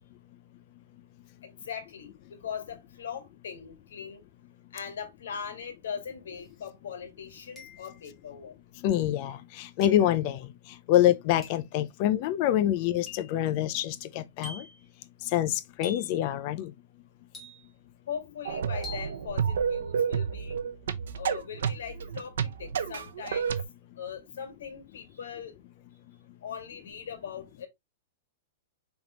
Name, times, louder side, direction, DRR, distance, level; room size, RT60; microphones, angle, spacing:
voice 1, 1.4-4.2 4.7-8.6 18.1-20.6 21.2-23.5 24.0-25.5 26.4-27.7, left 7 dB, 90° left, 1.7 m, -40 dB
sound 1, 6.4-6.5 7.6-8.1 9.8-10.1 11.4-11.7 13.1-13.4 14.4-14.9 15.8-16.2 17.3-17.9 18.8-19.2, left 4 dB, 10° left, 1.5 m, -45 dB
voice 2, 8.8-10.5 10.9-14.7 15.3-16.7, left 12 dB, 40° left, 0.4 m, -26 dB
sound 2, 18.4-23.6, right 7 dB, 90° right, 0.6 m, -30 dB
5.1 x 3.5 x 2.9 m
supercardioid pair, 165°, 0 cm